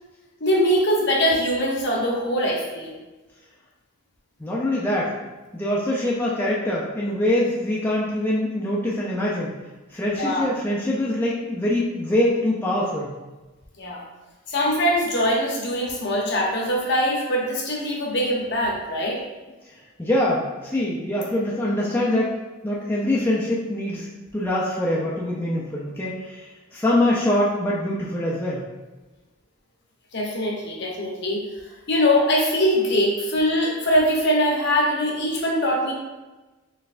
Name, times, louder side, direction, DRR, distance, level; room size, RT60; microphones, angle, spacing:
voice 1, 0.4-3.0 10.1-10.5 13.8-14.0 14.5-19.2 30.1-31.4 31.9-35.9, equal, 55° left, -2 dB, 0.8 m, -22 dB
voice 2, 4.4-5.1 5.5-9.6 9.9-13.1 20.0-22.3 22.6-24.1 24.3-28.6, left 1 dB, 10° left, -6 dB, 0.4 m, -24 dB
4.1 x 3.3 x 2.5 m, 1.2 s
head